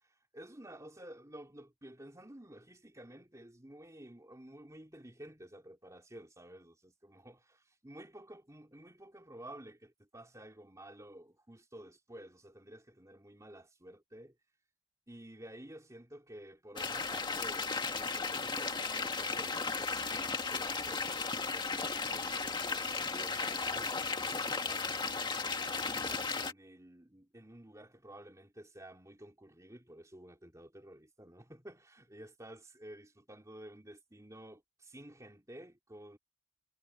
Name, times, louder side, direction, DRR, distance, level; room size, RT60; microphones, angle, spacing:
voice 1, 0.3-14.3 15.1-25.2 25.6-36.2, right 1 dB, 15° right, 3.6 m, -52 dB
sound 1, 16.8-26.5, left 4 dB, 20° left, 2.1 m, -35 dB
head